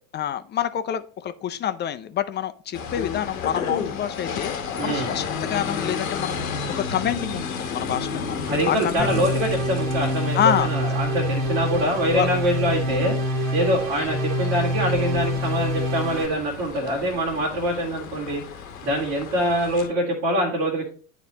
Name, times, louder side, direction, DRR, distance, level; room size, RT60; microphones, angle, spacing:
voice 1, 0.1-6.4 6.7-9.2 10.3-10.7 12.1-12.3, left 9 dB, 25° left, 0.4 m, -27 dB
sound 1, 2.7-19.9, left 6 dB, 85° left, 1.0 m, -33 dB
voice 2, 4.8-5.1 8.5-13.2 13.5-18.4 18.8-20.9, right 1 dB, 80° right, 1.9 m, -24 dB
sound 2, 9.0-16.3, equal, 55° right, 1.6 m, -26 dB
9.6 x 4.1 x 2.8 m
hypercardioid pair, 75°, 41 cm